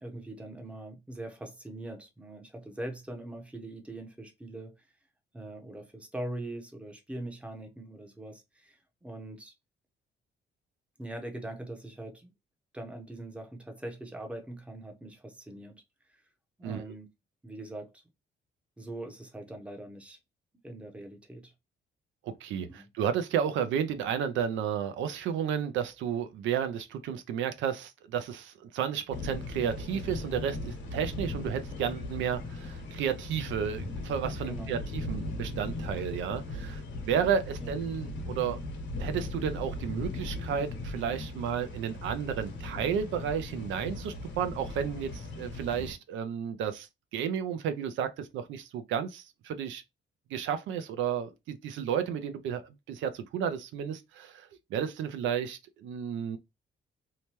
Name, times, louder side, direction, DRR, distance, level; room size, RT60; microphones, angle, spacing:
voice 1, 0.0-4.7 5.3-9.5 11.0-12.3 12.7-15.7 16.1-16.2 16.6-17.1 17.4-17.9 18.8-20.2 20.6-21.5 22.7-22.9 34.5-34.7 37.6-37.7, right 1 dB, 5° right, 0.6 m, -42 dB
voice 2, 16.6-16.9 22.2-38.6 39.0-49.8 50.3-56.4, right 8 dB, 90° right, 0.5 m, -32 dB
sound 1, 29.1-45.9, left 2 dB, 75° left, 1.0 m, -38 dB
2.8 x 2.2 x 3.0 m
cardioid pair, 145°, 19 cm